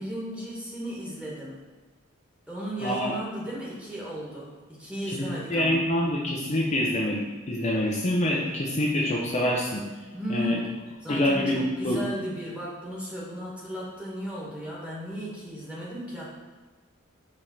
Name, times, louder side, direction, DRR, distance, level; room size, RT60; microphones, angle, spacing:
voice 1, 0.0-1.6 2.5-5.8 10.1-10.7 11.0-16.2, equal, 5° right, -6 dB, 1.7 m, -35 dB
voice 2, 2.8-3.1 5.1-9.8 10.3-10.6 11.1-12.0, left 1 dB, 35° left, -3 dB, 0.7 m, -26 dB
5.0 x 3.6 x 5.6 m, 1.3 s
head